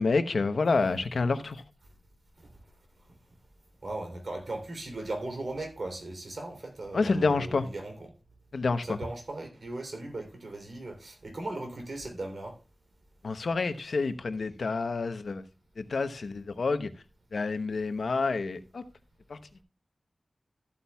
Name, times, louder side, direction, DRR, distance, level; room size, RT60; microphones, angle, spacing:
voice 1, 0.0-1.6 6.9-7.7 8.5-9.0 13.2-15.4 15.8-16.9 17.3-18.8 19.3-19.4, left 4 dB, 85° left, 0.9 m, -28 dB
voice 2, 3.8-8.1 8.8-12.6, right 2 dB, 65° right, 3.1 m, -38 dB
13.5 x 8.5 x 2.3 m
wide cardioid pair, 85°, 0 cm